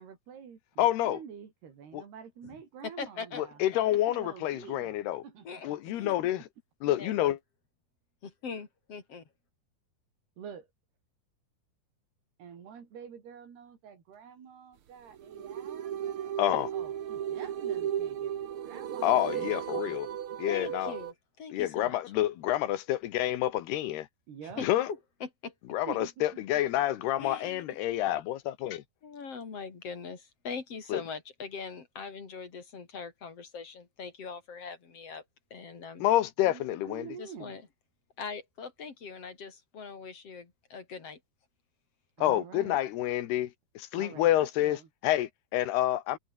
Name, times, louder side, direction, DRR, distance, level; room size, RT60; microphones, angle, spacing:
voice 1, 0.0-5.9 10.4-10.7 12.4-19.2 19.5-20.2 24.3-24.7 25.9-26.6 27.0-27.1 36.4-37.6 42.2-42.8 43.9-44.9, right 7 dB, 90° right, 5.9 m, -48 dB
voice 2, 0.8-1.2 1.9-2.0 3.4-5.2 5.6-6.4 6.8-7.4 16.4-16.7 19.0-20.1 20.4-20.9 21.5-24.1 24.6-24.9 25.7-28.8 30.9-31.0 36.0-37.1 42.2-43.5 43.8-46.2, left 13 dB, 90° left, 3.5 m, -28 dB
voice 3, 2.8-3.4 5.4-5.7 5.9-6.1 6.9-7.4 8.2-9.2 20.5-22.0 24.4-25.5 27.2-27.8 29.0-35.2 35.5-36.1 37.2-37.6 38.2-41.2, left 5 dB, 40° left, 3.9 m, -41 dB
sound 1, 15.1-21.1, right 10 dB, 70° right, 1.3 m, -35 dB
omnidirectional pair, 4.5 m